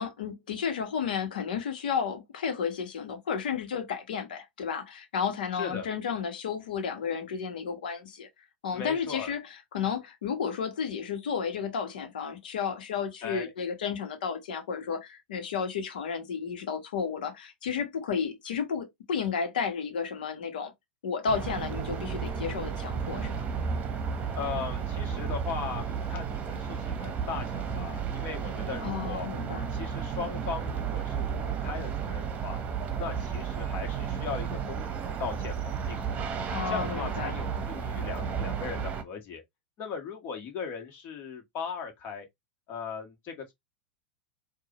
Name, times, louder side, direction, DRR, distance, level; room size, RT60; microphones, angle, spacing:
voice 1, 0.0-8.3 8.6-20.7 21.0-23.3 28.8-29.7 36.5-37.4, left 6 dB, 75° left, 1.3 m, -32 dB
voice 2, 5.5-5.9 8.7-9.3 13.2-13.5 24.4-29.3 29.7-32.6 33.0-36.2 36.7-39.4 39.8-42.3 42.7-43.5, left 6 dB, 40° left, 1.7 m, -38 dB
sound 1, 21.3-39.0, right 6 dB, 30° right, 1.0 m, -33 dB
4.6 x 2.6 x 3.0 m
hypercardioid pair, 100°, 5 cm